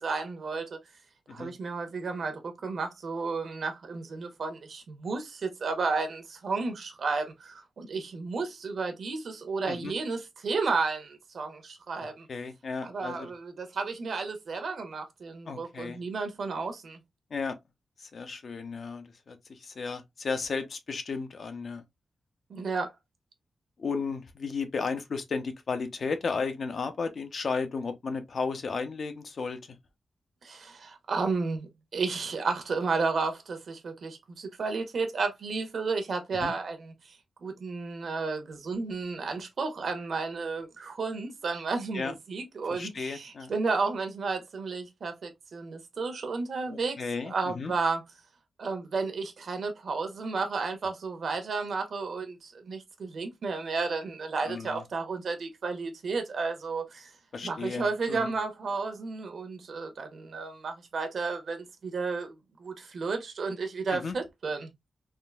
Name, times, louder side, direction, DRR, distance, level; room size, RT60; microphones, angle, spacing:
voice 1, 0.0-0.8 1.3-12.3 12.8-17.0 22.5-22.9 30.4-36.9 37.4-47.0 47.2-48.0 48.6-57.1 57.4-62.3 62.6-64.7, right 4 dB, 60° right, 0.8 m, -32 dB
voice 2, 12.3-13.3 15.5-16.0 17.3-17.5 18.0-21.8 23.8-29.6 36.4-36.5 41.9-42.1 42.7-43.5 46.7-47.7 54.5-54.8 57.3-58.3 63.9-64.1, left 4 dB, 50° left, 0.5 m, -34 dB
3.7 x 2.5 x 2.3 m
wide cardioid pair, 160°, 0 cm